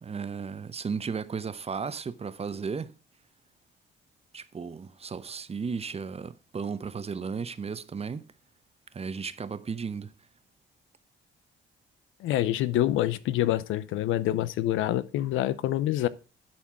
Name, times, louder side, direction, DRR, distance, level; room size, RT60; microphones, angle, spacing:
voice 1, 0.0-2.9 4.3-8.3 8.9-10.1, right 5 dB, 30° right, 0.8 m, -34 dB
voice 2, 12.2-16.1, left 13 dB, 90° left, 0.6 m, -26 dB
10.0 x 4.4 x 5.9 m
cardioid pair, 90°, 20 cm